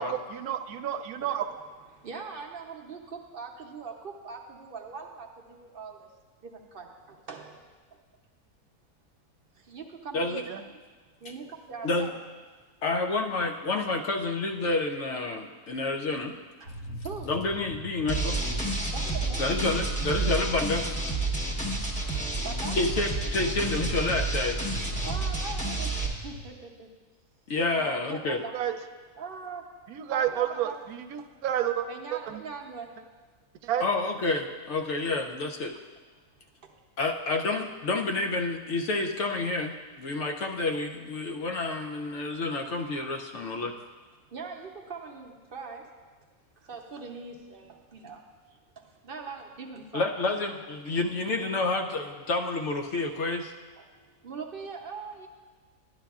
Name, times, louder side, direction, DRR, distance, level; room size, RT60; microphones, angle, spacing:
voice 1, 0.0-1.4 10.4-10.6 28.5-28.7 29.9-32.4 33.6-33.9, right 10 dB, 85° right, 8 dB, 1.0 m, -30 dB
voice 2, 1.9-6.1 6.4-7.7 7.9-8.0 9.5-10.5 11.2-12.1 16.6-16.8 17.0-17.3 18.9-19.7 22.4-22.8 25.0-25.9 26.2-26.9 27.7-28.5 29.2-29.7 30.1-30.8 31.9-32.9 36.6-36.8 40.2-40.3 43.3-43.4 44.3-45.9 46.6-50.4 53.8-53.9 54.2-55.3, right 5 dB, 50° right, 2 dB, 0.8 m, -41 dB
voice 3, 12.8-16.3 17.3-18.4 19.4-20.9 22.8-24.6 27.5-28.4 33.8-35.7 37.0-43.7 49.9-53.5, left 3 dB, 65° left, 4 dB, 0.8 m, -29 dB
sound 1, 16.6-26.4, equal, 80° left, 1.6 m, -42 dB
sound 2, 18.1-26.1, right 2 dB, 5° left, 0.7 m, -30 dB
11.5 x 11.0 x 2.3 m, 1.4 s
omnidirectional pair, 1.5 m